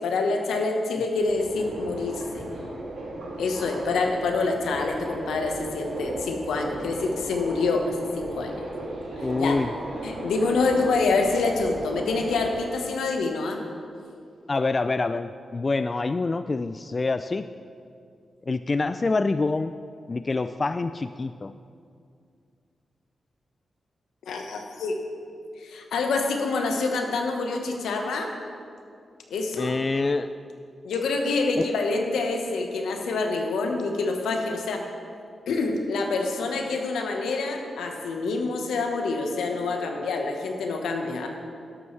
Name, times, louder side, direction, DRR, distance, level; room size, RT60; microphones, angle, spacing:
voice 1, 0.0-2.4 3.4-8.5 9.4-9.6 10.0-13.6 24.3-24.9 25.6-28.3 29.3-29.7 30.8-34.8 35.5-41.3, left 3 dB, 85° left, 3 dB, 1.1 m, -26 dB
Subway metro underground, 1.2-12.6, right 1 dB, 85° right, 2.5 m, -36 dB
voice 2, 9.2-9.7 14.5-17.5 18.5-19.7 20.1-21.5 29.5-30.3 31.6-31.7, left 3 dB, 45° left, 11 dB, 0.3 m, -26 dB
12.0 x 11.5 x 3.3 m, 2.3 s
supercardioid pair, 45°, 0 cm